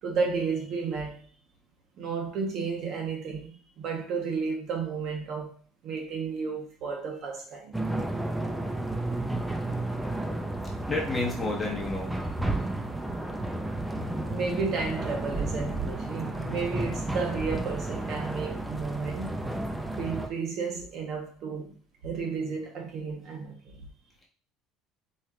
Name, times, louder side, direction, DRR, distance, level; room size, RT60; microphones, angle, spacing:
voice 1, 0.0-1.2 2.0-5.5 5.8-7.7 8.6-8.7 14.3-19.3 20.0-21.7 22.0-23.8, right 5 dB, 45° right, 1.2 m, -32 dB
sound 1, 7.7-20.3, right 2 dB, 5° right, 0.4 m, -32 dB
voice 2, 10.9-12.1, left 3 dB, 10° left, 1.1 m, -30 dB
4.3 x 3.2 x 3.7 m
cardioid pair, 160°, 0 cm